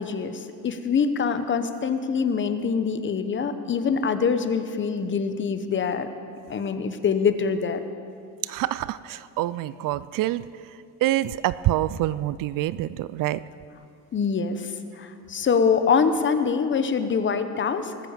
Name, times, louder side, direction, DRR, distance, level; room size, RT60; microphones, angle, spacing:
voice 1, 0.0-6.1 6.5-7.8 14.1-18.1, left 6 dB, 30° left, 9 dB, 1.0 m, -24 dB
voice 2, 8.4-13.4, right 14 dB, 60° right, 17 dB, 0.5 m, -26 dB
20.0 x 9.2 x 7.4 m, 2.4 s
cardioid pair, 130°, 37 cm